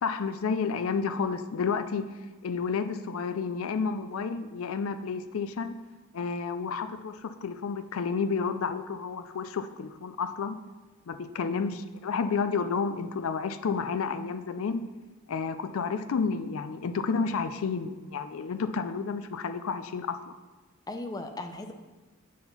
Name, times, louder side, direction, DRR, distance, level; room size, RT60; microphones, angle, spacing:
voice 1, 0.0-2.1 2.4-5.8 6.1-10.5 11.1-14.8 15.3-20.4, left 5 dB, 70° left, 10 dB, 0.4 m, -31 dB
voice 2, 11.5-11.9 20.9-21.7, left 2 dB, 15° left, 5 dB, 0.5 m, -37 dB
8.4 x 4.4 x 5.5 m, 1.2 s
head